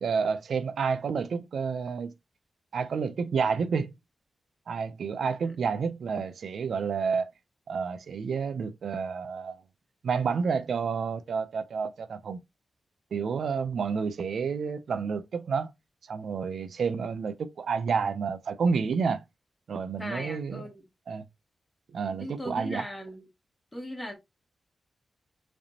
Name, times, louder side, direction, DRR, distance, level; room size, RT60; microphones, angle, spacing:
voice 1, 0.0-2.1 2.7-3.9 4.7-7.3 7.7-9.6 10.0-12.4 13.1-15.7 16.1-19.2 19.7-20.6 21.1-21.2 21.9-22.9, right 5 dB, 80° right, 0.5 m, -29 dB
voice 2, 20.0-20.8 22.1-23.3 23.7-24.1, left 1 dB, 15° left, 1.8 m, -38 dB
4.9 x 3.4 x 2.8 m
wide cardioid pair, 90°, 0 cm